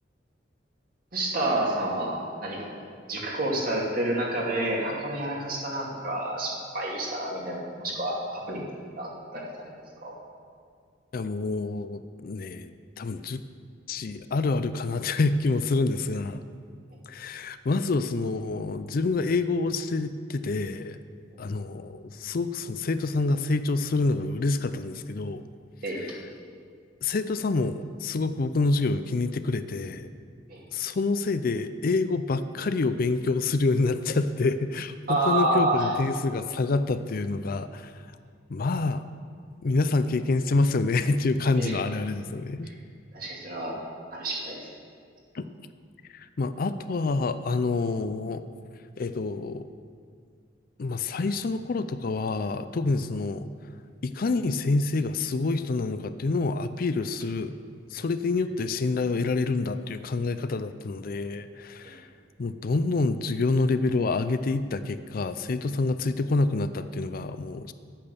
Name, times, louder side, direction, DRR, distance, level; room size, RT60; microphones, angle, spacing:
voice 1, 1.1-8.6 9.0-10.1 25.8-26.0 30.5-30.6 35.1-35.9 41.6-41.7 42.6-42.7 43.1-43.8 44.1-44.6 61.8-62.0, right 1 dB, 50° right, -3 dB, 2.5 m, -29 dB
voice 2, 11.1-13.4 13.9-16.4 17.1-21.0 21.4-25.4 25.9-26.2 27.0-30.1 30.7-37.9 38.5-39.1 39.6-42.7 45.3-45.5 46.1-48.4 49.0-49.7 50.8-53.5 54.0-57.6 57.9-62.1 62.4-67.7, left 3 dB, 50° left, 11 dB, 0.4 m, -27 dB
10.0 x 8.7 x 6.9 m, 2.1 s
head